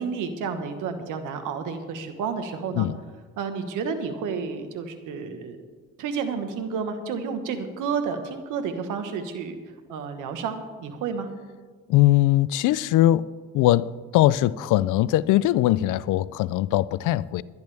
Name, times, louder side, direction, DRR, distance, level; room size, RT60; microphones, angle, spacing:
voice 1, 0.0-2.9 3.4-5.6 6.0-9.6 9.9-11.3, right 5 dB, 90° right, 1.4 m, -30 dB
voice 2, 11.9-17.4, left 14 dB, 85° left, 0.5 m, -21 dB
21.5 x 10.5 x 3.5 m
cardioid pair, 90°, 30 cm